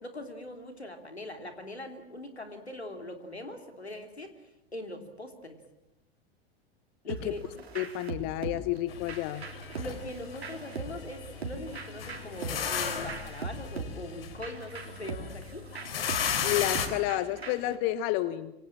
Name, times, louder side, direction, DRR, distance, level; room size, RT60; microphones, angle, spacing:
voice 1, 0.0-4.3 4.7-5.6 7.0-7.4 9.8-15.6, left 1 dB, 90° left, 6 dB, 3.3 m, -41 dB
sound 1, 7.1-17.8, right 4 dB, 80° right, 3.5 m, -41 dB
voice 2, 7.7-9.5 16.4-18.5, left 14 dB, 45° left, 14 dB, 1.2 m, -30 dB
sound 2, 8.9-16.9, left 7 dB, 65° left, 3.5 m, -35 dB
27.0 x 24.5 x 7.4 m, 0.89 s
figure-of-eight pair, 85°, 31 cm